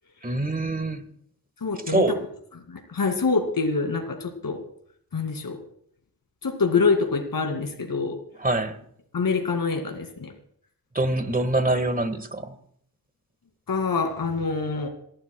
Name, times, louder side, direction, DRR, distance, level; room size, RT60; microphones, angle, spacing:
voice 1, 0.2-1.0 1.9-2.2 8.4-8.8 10.9-12.5, right 2 dB, 25° right, 1.5 m, -24 dB
voice 2, 1.6-2.0 2.7-4.6 5.1-5.6 6.4-8.2 9.1-10.3 13.7-14.9, left 4 dB, 75° left, 2.3 m, -25 dB
27.5 x 11.5 x 2.3 m
cardioid pair, 55°, 35 cm